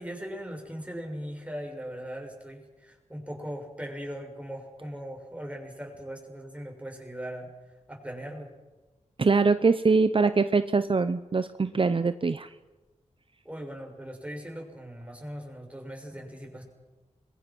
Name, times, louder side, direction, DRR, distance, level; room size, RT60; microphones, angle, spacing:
voice 1, 0.0-7.5 7.9-8.5 13.4-16.6, equal, 10° right, 1 dB, 6.5 m, -39 dB
voice 2, 9.2-12.5, right 4 dB, 45° right, 11 dB, 0.8 m, -23 dB
27.0 x 22.5 x 6.2 m, 1.2 s
wide cardioid pair, 80°, 13 cm